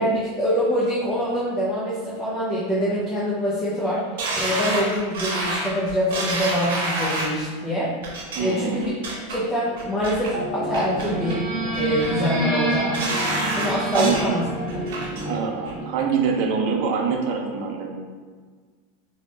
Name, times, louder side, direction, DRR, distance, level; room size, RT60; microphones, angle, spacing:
voice 1, 0.0-4.0 4.4-7.9 8.4-8.9 9.3-11.4 11.7-13.0 13.6-14.4, equal, 15° left, -7 dB, 0.6 m, -24 dB
sound 1, 4.2-7.4 8.0-8.4 8.8-9.4 9.8-10.3 10.7-11.4 11.7-12.3 12.7-14.3 14.7-15.3 15.7-15.8, right 2 dB, 70° right, 0.9 m, -28 dB
voice 2, 8.3-8.8 13.9-14.2 15.0-17.9, right 6 dB, 50° right, 2 dB, 0.5 m, -25 dB
sound 2, 10.3-16.4, right 1 dB, 30° right, 0.9 m, -28 dB
3.0 x 2.7 x 3.2 m, 1.5 s
supercardioid pair, 150°, 0 cm